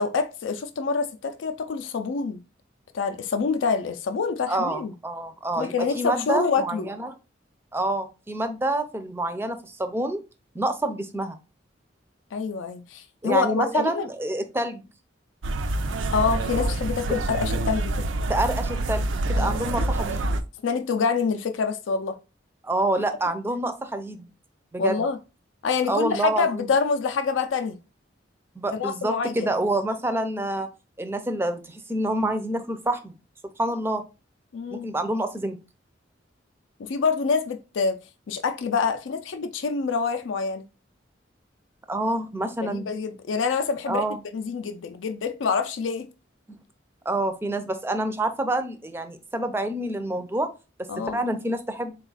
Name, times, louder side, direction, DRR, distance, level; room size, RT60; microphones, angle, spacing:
voice 1, 0.0-2.4 2.9-4.9 5.6-6.9 12.3-14.1 16.1-17.9 19.4-19.5 20.6-22.2 24.8-25.2 25.6-27.8 28.7-29.5 34.5-34.9 36.8-38.0 38.3-40.6 42.6-44.0 44.3-46.1 50.9-51.2, left 5 dB, 80° left, 0.4 m, -26 dB
voice 2, 4.5-7.2 7.7-10.2 10.5-11.4 13.2-14.8 18.3-20.3 22.6-24.3 24.7-25.0 25.9-26.7 28.6-30.7 31.0-33.1 33.6-34.0 34.7-35.6 41.9-42.9 43.9-44.2 47.1-50.5 51.1-51.9, right 1 dB, 10° right, 0.4 m, -27 dB
sound 1, 15.4-20.4, right 2 dB, 85° right, 0.4 m, -26 dB
4.0 x 2.3 x 3.9 m
head